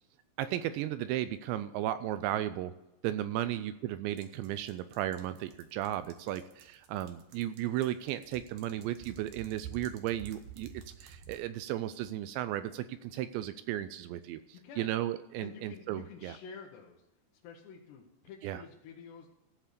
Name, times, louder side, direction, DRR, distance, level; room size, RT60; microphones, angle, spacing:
voice 1, 0.4-2.7 3.0-16.4 18.4-18.6, right 13 dB, 85° right, 12 dB, 2.6 m, -35 dB
sound 1, 4.2-11.4, right 8 dB, 70° right, 2.1 m, -51 dB
voice 2, 14.5-14.9 15.4-17.0 17.4-19.3, left 6 dB, 70° left, -3 dB, 3.1 m, -49 dB
15.5 x 5.7 x 6.7 m, 0.94 s
omnidirectional pair, 5.5 m